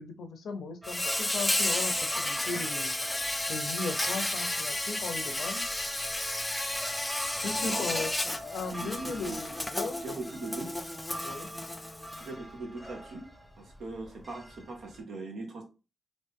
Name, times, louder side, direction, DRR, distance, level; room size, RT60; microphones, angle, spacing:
voice 1, 0.0-3.0 3.5-5.7 7.4-10.0 11.2-11.5, left 4 dB, 75° left, 7 dB, 0.6 m, -37 dB
Insect, 0.8-12.3, left 1 dB, 20° left, 0.5 m, -32 dB
sound 1, 0.8-15.0, equal, 5° right, 0.8 m, -44 dB
voice 2, 7.5-7.9 8.7-9.4 10.0-10.8 12.2-13.3 13.6-15.6, right 2 dB, 75° right, 2 dB, 1.0 m, -40 dB
3.2 x 2.5 x 3.5 m, 0.31 s
supercardioid pair, 45°, 0 cm